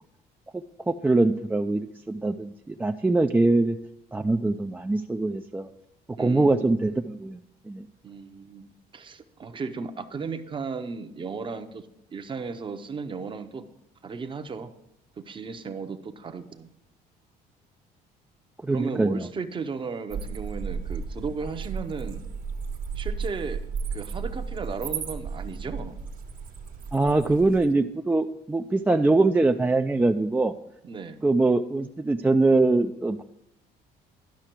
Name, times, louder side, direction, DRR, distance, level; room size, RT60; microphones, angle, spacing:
voice 1, 0.5-3.8 4.1-5.7 6.2-7.4 7.7-7.9 18.6-19.3 26.9-30.5 31.2-33.2, right 2 dB, 10° right, 5 dB, 0.3 m, -23 dB
voice 2, 6.2-6.7 8.0-11.8 12.1-13.6 14.0-14.7 15.2-16.7 18.7-22.2 23.0-23.6 23.9-26.0 30.8-31.2, right 5 dB, 30° right, 9 dB, 0.7 m, -35 dB
sound 1, 20.1-27.7, right 5 dB, 55° right, 1.2 m, -34 dB
11.5 x 5.8 x 4.5 m, 0.82 s
cardioid pair, 110°, 17 cm